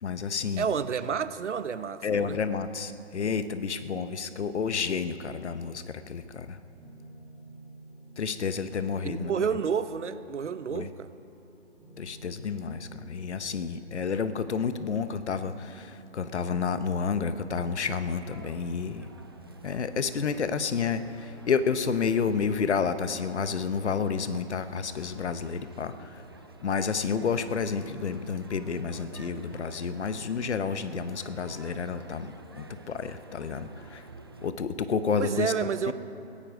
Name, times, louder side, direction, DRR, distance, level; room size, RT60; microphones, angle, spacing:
voice 1, 0.0-0.6 2.0-6.6 8.2-9.3 10.7-10.9 12.0-19.1 19.6-26.2 26.6-34.1 34.4-35.5 35.9-36.0, left 5 dB, 75° left, 12 dB, 1.0 m, -30 dB
voice 2, 0.6-2.4 9.0-11.1 35.2-35.9, right 6 dB, 80° right, 13 dB, 0.9 m, -30 dB
sound 1, 6.8-22.4, right 1 dB, 5° right, 2.1 m, -53 dB
sound 2, 17.8-34.5, right 3 dB, 20° right, 0.4 m, -50 dB
17.5 x 15.5 x 5.0 m, 2.9 s
hypercardioid pair, 155°, 35 cm